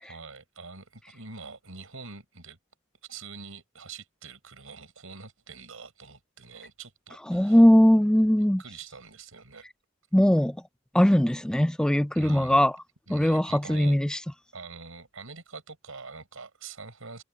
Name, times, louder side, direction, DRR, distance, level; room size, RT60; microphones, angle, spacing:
voice 1, 0.0-2.6 3.1-7.6 8.6-9.6 12.1-12.6 13.1-14.0 14.5-17.2, right 4 dB, 80° right, 4.6 m, -44 dB
voice 2, 7.3-8.6 10.1-10.6 10.9-12.7 13.1-14.2, equal, 5° left, 0.3 m, -20 dB
head